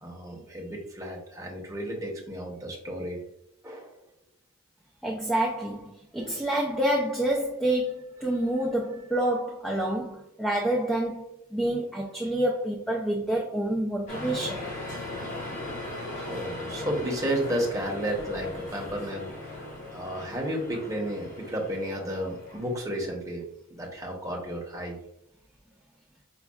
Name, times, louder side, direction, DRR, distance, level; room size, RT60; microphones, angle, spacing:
voice 1, 0.0-3.2 3.6-4.0 15.3-15.5 16.1-23.4 23.7-25.0, equal, 15° right, 0.8 m, -32 dB
voice 2, 5.0-11.3 11.5-14.6, right 1 dB, ahead, 0.4 m, -28 dB
sound 1, 14.1-23.1, left 2 dB, 40° left, 0.8 m, -39 dB
5.2 x 2.3 x 2.3 m
head